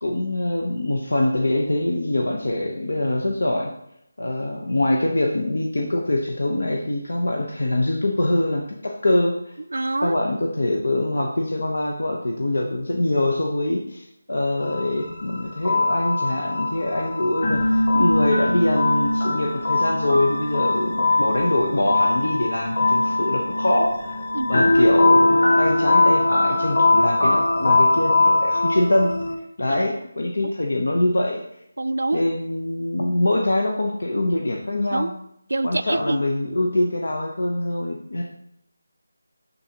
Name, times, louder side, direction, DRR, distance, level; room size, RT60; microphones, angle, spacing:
voice 1, 0.0-3.7 4.2-9.6 10.0-24.2 24.5-29.1 29.6-31.4 32.1-35.1 35.6-38.2, left 1 dB, 75° left, 1 dB, 0.9 m, -24 dB
voice 2, 9.7-10.2 24.3-24.5 31.8-32.2 34.9-35.1 35.5-36.2, right 2 dB, 70° right, 14 dB, 0.3 m, -25 dB
sound 1, 14.6-29.3, left 2 dB, 60° left, 1.4 m, -21 dB
11.0 x 4.0 x 2.9 m, 0.78 s
figure-of-eight pair, 165°, 0 cm